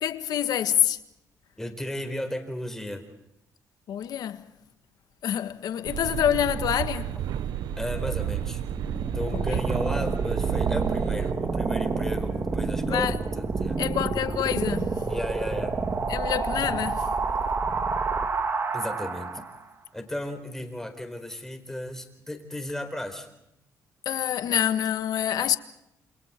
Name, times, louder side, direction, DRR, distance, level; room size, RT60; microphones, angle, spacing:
voice 1, 0.0-1.0 3.9-4.5 5.2-7.2 9.3-9.6 12.8-13.2 13.8-15.1 16.1-17.1 24.0-25.6, left 10 dB, 75° left, 1.6 m, -27 dB
voice 2, 1.6-3.0 7.8-8.6 9.1-13.8 15.1-15.8 18.7-19.5 19.9-23.3, left 1 dB, 5° left, 4.4 m, -34 dB
sound 1, 5.9-11.3, right 11 dB, 90° right, 0.9 m, -31 dB
sound 2, 8.7-19.6, right 4 dB, 35° right, 2.5 m, -28 dB
28.5 x 28.0 x 4.5 m
cardioid pair, 115°, 7 cm